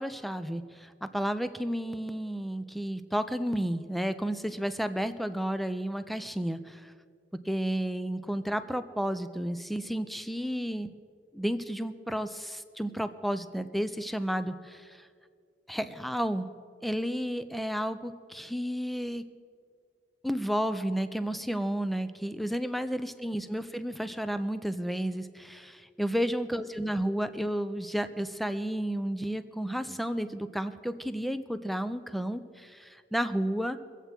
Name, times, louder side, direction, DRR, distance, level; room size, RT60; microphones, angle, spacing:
voice 1, 0.0-6.9 7.5-10.9 11.3-14.9 15.7-16.5 16.8-19.2 20.2-33.8, equal, ahead, 11 dB, 0.4 m, -32 dB
24.0 x 8.1 x 4.4 m, 2.2 s
head